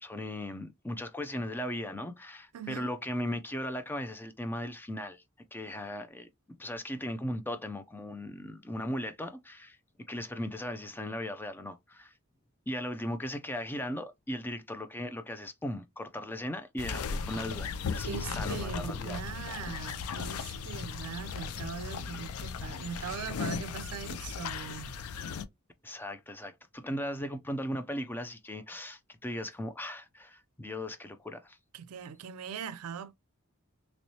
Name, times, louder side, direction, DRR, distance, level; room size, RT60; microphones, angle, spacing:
voice 1, 0.0-5.2 5.5-6.3 6.6-9.8 10.1-12.1 12.7-19.2 23.0-23.1 25.8-31.6, left 1 dB, 10° left, 0.3 m, -37 dB
voice 2, 2.5-2.9 18.1-24.9 31.7-33.1, right 7 dB, 85° right, 0.4 m, -40 dB
sound 1, 16.8-25.4, left 6 dB, 85° left, 0.4 m, -37 dB
3.0 x 3.0 x 2.7 m
head